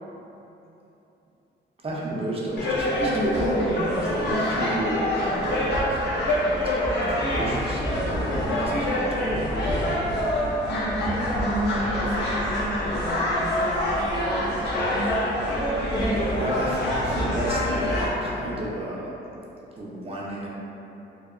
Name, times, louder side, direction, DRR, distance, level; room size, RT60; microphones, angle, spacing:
voice 1, 1.8-9.6 16.4-17.8 18.2-19.1 19.7-20.5, right 1 dB, 30° right, -5 dB, 0.6 m, -32 dB
sound 1, 2.6-18.1, left 1 dB, 60° left, 0.6 m, -25 dB
voice 2, 10.6-15.2 15.9-16.3, equal, 20° left, -6 dB, 0.6 m, -30 dB
2.7 x 2.1 x 2.4 m, 3.0 s
cardioid pair, 90°, 20 cm